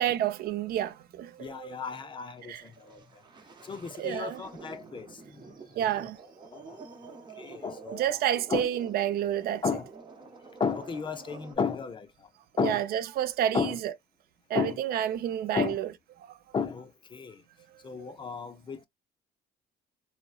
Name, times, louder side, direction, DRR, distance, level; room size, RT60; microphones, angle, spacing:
voice 1, 0.0-1.8 2.4-2.6 4.0-4.4 5.8-6.2 7.9-9.6 12.6-13.7 14.5-15.9 16.2-16.3, right 11 dB, 65° right, 0.5 m, -29 dB
voice 2, 1.4-3.0 3.6-5.5 6.5-6.8 7.0-8.0 8.5-8.7 9.6-9.9 10.6-12.1 12.6-12.8 13.5-13.8 14.5-14.8 15.5-15.8 16.5-17.4 17.8-18.8, left 6 dB, 30° left, 0.5 m, -33 dB
sound 1, 1.9-11.6, right 4 dB, 25° right, 0.9 m, -49 dB
3.7 x 2.1 x 2.3 m
cardioid pair, 110°, 17 cm